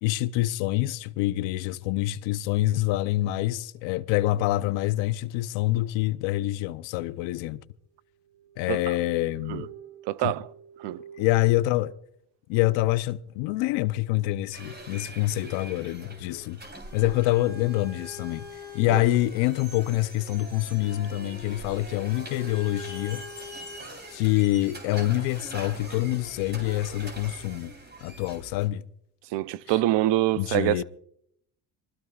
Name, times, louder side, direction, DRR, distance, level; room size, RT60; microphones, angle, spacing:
voice 1, 0.0-7.6 8.6-9.7 10.2-10.3 11.2-11.9 12.5-16.6 16.9-18.5 18.7-23.2 24.1-27.7 28.0-28.8 30.3-30.8, left 16 dB, 85° left, 0.7 m, -26 dB
sound 1, 8.0-12.0, right 8 dB, 90° right, 1.3 m, -47 dB
voice 2, 10.1-10.5 10.8-11.0 18.9-19.0 29.3-30.8, right 15 dB, 70° right, 0.7 m, -25 dB
sound 2, 14.5-28.7, equal, 25° right, 3.7 m, -42 dB
26.0 x 20.0 x 2.4 m
supercardioid pair, 80°, 44 cm